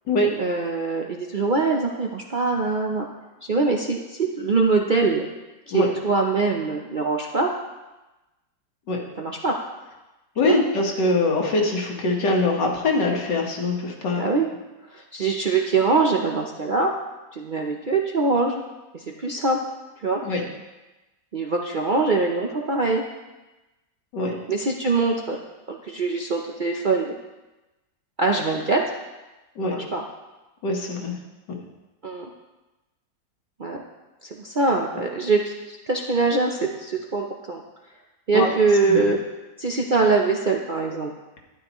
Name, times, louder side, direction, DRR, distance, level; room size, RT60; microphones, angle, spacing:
voice 1, 0.4-3.1 3.5-5.3 5.7-7.5 9.2-9.6 10.4-10.6 14.1-14.5 14.9-16.9 17.3-18.6 18.9-19.6 20.0-20.2 21.3-23.1 24.5-25.4 25.7-27.1 28.2-28.8 29.7-30.0 32.0-32.2 33.6-33.8 34.2-37.6 38.3-39.2 39.6-41.1, right 3 dB, 50° right, 0 dB, 0.6 m, -23 dB
voice 2, 10.4-14.2 20.2-20.4 24.1-24.4 29.6-29.8 30.6-31.1 31.5-31.6 38.3-38.5 38.9-39.1, left 2 dB, 90° left, 0 dB, 2.1 m, -23 dB
12.5 x 10.5 x 3.1 m, 1.1 s
omnidirectional pair, 1.8 m